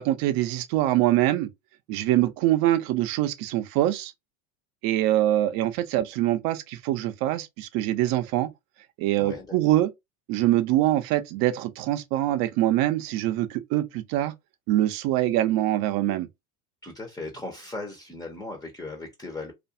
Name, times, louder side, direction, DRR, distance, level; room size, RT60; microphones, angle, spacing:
voice 1, 0.0-1.5 1.9-4.1 4.8-8.5 9.0-9.9 10.3-14.3 14.7-16.3, right 14 dB, 50° right, 0.6 m, -24 dB
voice 2, 9.1-9.6 16.8-19.5, left 2 dB, 10° left, 0.6 m, -37 dB
2.5 x 2.2 x 2.6 m
supercardioid pair, 110°, 44 cm